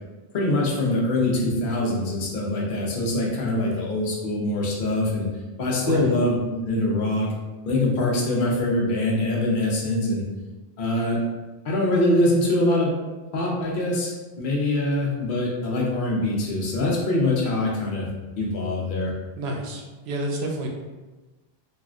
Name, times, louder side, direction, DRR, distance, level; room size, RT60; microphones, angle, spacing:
voice 1, 0.3-5.3 5.6-7.3 7.7-10.2 10.8-11.2 11.6-13.0 13.3-18.1 18.4-19.1, left 1 dB, 55° left, -3 dB, 0.8 m, -23 dB
voice 2, 5.8-6.1 19.4-20.7, right 2 dB, 80° right, 1 dB, 0.8 m, -29 dB
3.5 x 2.4 x 2.4 m, 1.2 s
omnidirectional pair, 1.1 m